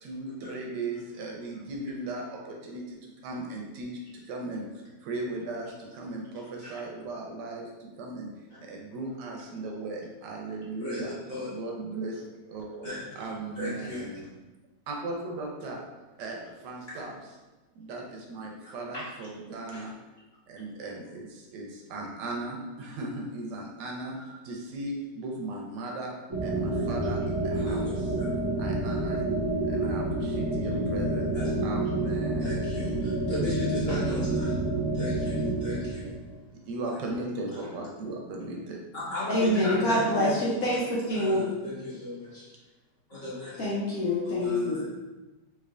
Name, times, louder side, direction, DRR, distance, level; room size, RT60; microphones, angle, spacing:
voice 1, 0.0-8.3 8.6-11.2 11.4-12.9 13.1-14.2 14.9-15.8 16.2-17.1 17.7-19.9 20.5-26.1 26.4-28.1 28.6-31.4 31.6-32.7 36.5-38.8, right 2 dB, 75° right, 0 dB, 1.2 m, -37 dB
voice 2, 10.8-11.5 12.8-13.0 13.6-14.0 16.9-17.0 18.9-19.0 19.7-19.8 24.2-24.3 27.5-28.3 31.3-31.5 32.4-34.6 34.9-36.0 38.9-40.5 41.1-42.5 43.1-43.7 44.2-44.9, left 2 dB, 35° left, -10 dB, 1.5 m, -36 dB
sound 1, 26.3-36.3, right 2 dB, 20° right, 0.7 m, -29 dB
voice 3, 39.3-41.4 43.6-44.8, left 1 dB, 65° left, -5 dB, 1.0 m, -26 dB
3.8 x 3.2 x 2.4 m, 1.1 s
omnidirectional pair, 1.9 m